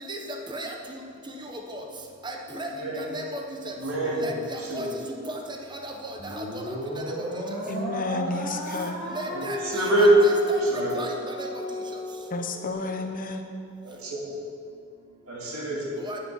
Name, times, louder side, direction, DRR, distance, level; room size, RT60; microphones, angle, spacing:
voice 1, 2.2-2.7 3.0-3.4 3.7-3.8 4.2-4.9 5.8-6.4 9.1-11.1 11.4-11.5 16.0-16.2, right 1 dB, 20° right, 2 dB, 1.0 m, -35 dB
voice 2, 3.8-4.3 4.7-4.9 9.3-11.0 13.8-14.2 15.3-15.8, right 1 dB, 85° right, -3 dB, 2.4 m, -23 dB
sound 1, 6.2-12.7, left 1 dB, 40° right, 2.3 m, -35 dB
voice 3, 7.7-9.0 12.3-13.4, left 2 dB, 40° left, 5 dB, 0.9 m, -31 dB
9.7 x 8.9 x 5.5 m, 2.4 s
head